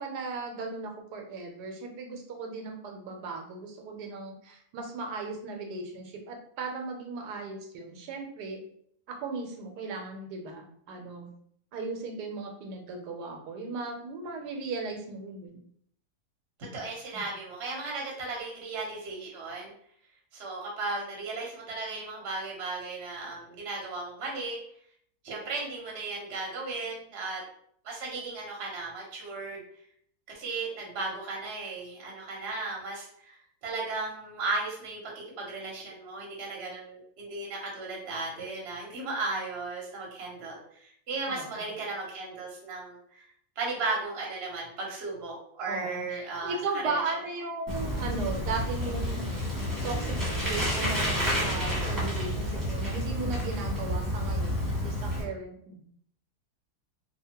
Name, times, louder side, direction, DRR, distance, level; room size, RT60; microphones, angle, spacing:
voice 1, 0.0-8.6 9.1-11.3 11.7-15.6 17.1-17.2 41.3-41.7 45.7-49.3 49.8-50.2 50.4-55.8, right 3 dB, 85° right, 3 dB, 1.2 m, -36 dB
voice 2, 16.6-19.7 20.3-24.6 25.2-27.4 27.8-29.6 30.3-43.2 43.6-46.6 46.8-46.9, right 3 dB, 50° right, -2 dB, 0.9 m, -35 dB
Bicycle, 47.7-55.2, equal, 15° right, 1.1 m, -30 dB
2.7 x 2.4 x 2.8 m, 0.65 s
omnidirectional pair, 1.7 m